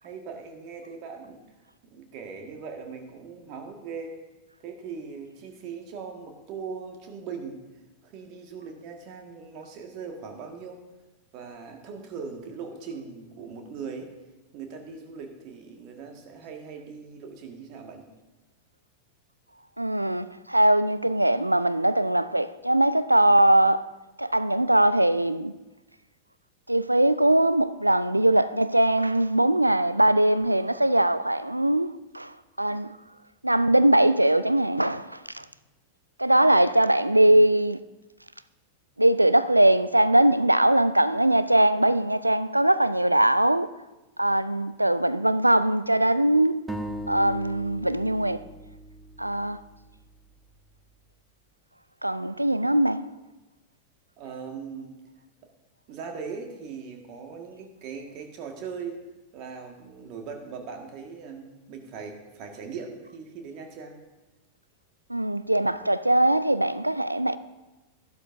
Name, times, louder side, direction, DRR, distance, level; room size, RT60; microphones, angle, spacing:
voice 1, 0.0-1.4 1.8-4.2 4.6-7.6 8.0-10.8 11.3-14.1 14.5-18.1 54.2-55.0 55.9-59.0 59.3-64.0, right 5 dB, 40° right, 1.7 m, -40 dB
voice 2, 19.8-23.9 24.2-25.5 26.7-32.9 33.4-35.5 36.2-37.8 39.0-43.7 44.2-46.6 47.1-48.4 49.2-49.6 52.0-53.0 65.1-67.4, right 1 dB, 85° right, 0.3 m, -21 dB
sound 1, 46.7-50.3, right 1 dB, 5° right, 1.1 m, -39 dB
12.5 x 12.0 x 2.7 m
figure-of-eight pair, 90°, 0 cm